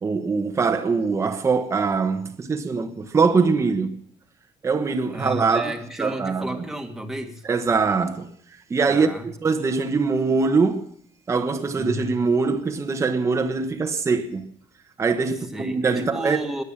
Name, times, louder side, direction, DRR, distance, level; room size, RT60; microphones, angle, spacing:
voice 1, 0.0-4.0 4.6-5.7 6.0-6.5 7.5-8.3 8.7-9.1 9.4-10.8 11.3-14.4 15.0-16.4, right 4 dB, 25° right, 1.2 m, -22 dB
voice 2, 5.1-7.5 8.9-9.3 11.7-12.1 15.3-16.6, right 1 dB, 5° right, 1.8 m, -32 dB
20.5 x 8.2 x 7.3 m
cardioid pair, 150°, 12 cm